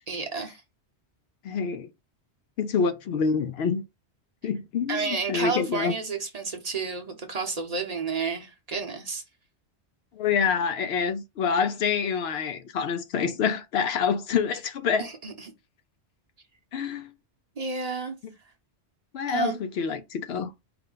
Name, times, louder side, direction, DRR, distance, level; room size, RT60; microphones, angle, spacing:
voice 1, 0.1-0.6 4.9-9.2 15.0-15.5 17.6-18.2 19.3-19.6, right 4 dB, 40° right, 0.8 m, -31 dB
voice 2, 1.4-1.9 2.6-3.8 4.4-5.9 10.1-15.1 16.7-17.1 19.1-20.5, left 6 dB, 70° left, 0.8 m, -27 dB
4.8 x 2.1 x 3.7 m
omnidirectional pair, 1.2 m